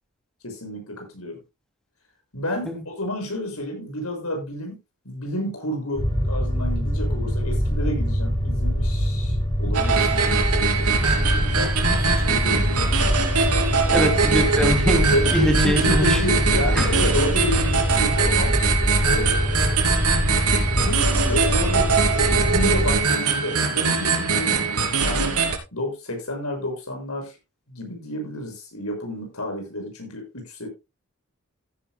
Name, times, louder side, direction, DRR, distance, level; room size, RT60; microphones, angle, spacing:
voice 1, 0.4-1.4 2.3-4.8 5.0-13.0 15.1-18.6 19.0-20.0 20.7-24.6 25.0-25.4 25.7-27.4 27.7-30.7, left 1 dB, 80° left, 6.7 m, -30 dB
sound 1, 6.0-23.0, equal, 20° left, 5.9 m, -23 dB
sound 2, 9.7-25.6, right 5 dB, 85° right, 3.1 m, -22 dB
voice 2, 13.9-15.1 15.3-16.2 16.7-16.9, equal, 5° left, 2.8 m, -23 dB
15.5 x 10.5 x 2.3 m
head